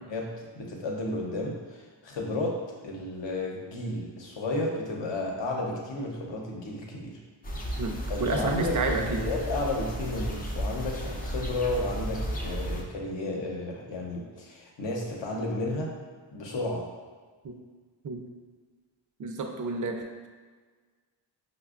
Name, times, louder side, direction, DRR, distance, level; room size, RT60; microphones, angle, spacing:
voice 1, 0.1-7.1 8.1-15.9 16.3-16.8, left 2 dB, 65° left, -1 dB, 0.8 m, -32 dB
sound 1, 7.4-12.8, equal, 20° left, 0.4 m, -33 dB
voice 2, 7.8-9.2 17.4-17.5 18.0-18.2 19.2-20.3, right 3 dB, 40° right, 4 dB, 0.4 m, -30 dB
5.0 x 2.2 x 2.4 m, 1.5 s
wide cardioid pair, 85°, 48 cm